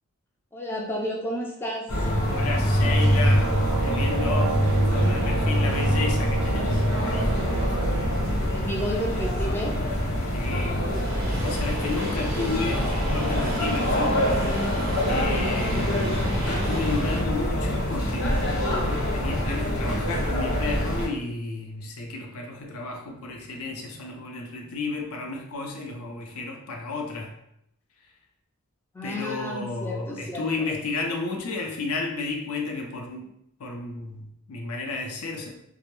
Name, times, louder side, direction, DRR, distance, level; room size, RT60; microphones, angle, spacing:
voice 1, 0.5-2.1 8.5-9.7 11.7-11.9 28.9-30.4, equal, 10° left, -2 dB, 0.3 m, -32 dB
sound 1, 1.9-21.1, equal, 70° left, 1.0 m, -24 dB
voice 2, 2.3-3.5 3.8-7.3 10.3-10.8 11.4-14.6 15.1-27.3 29.0-33.3 33.6-35.6, left 3 dB, 85° left, 2 dB, 0.5 m, -32 dB
Brass instrument, 2.8-8.3, right 5 dB, 85° right, 0.3 m, -32 dB
sound 2, 10.8-17.2, right 1 dB, 45° right, 0.6 m, -35 dB
2.1 x 2.1 x 2.9 m, 0.77 s
head